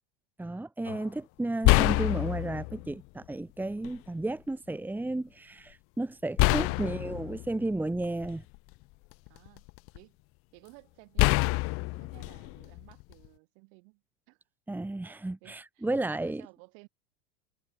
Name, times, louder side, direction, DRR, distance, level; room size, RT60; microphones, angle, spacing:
voice 1, 0.4-8.4 14.7-16.4, right 2 dB, 5° right, 1.9 m, -33 dB
sound 1, 0.9-1.0 1.6-2.9 3.8-4.0 6.4-8.6 9.1-10.0 11.2-13.3, left 26 dB, 45° left, 0.6 m, -26 dB
voice 2, 6.5-7.2 9.3-10.2 10.5-14.0 14.3-14.4 15.0-16.9, right 40 dB or more, 60° right, 7.4 m, -56 dB
hypercardioid pair, 105°, 32 cm